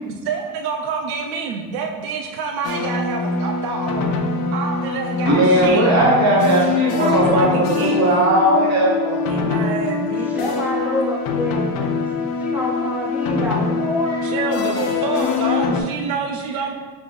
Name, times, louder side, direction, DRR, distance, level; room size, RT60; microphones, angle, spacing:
voice 1, 0.2-4.1 4.5-6.0 7.0-8.3 9.3-10.3 14.3-16.7, right 5 dB, 85° right, 2 dB, 0.5 m, -27 dB
sound 1, 2.6-15.8, left 4 dB, 70° left, 0.6 m, -23 dB
voice 2, 5.3-9.2, right 1 dB, 50° right, -3 dB, 1.1 m, -17 dB
voice 3, 10.2-11.9 12.4-15.0, left 1 dB, 5° right, -3 dB, 0.3 m, -27 dB
5.3 x 2.5 x 3.0 m, 1.5 s
cardioid pair, 150°, 36 cm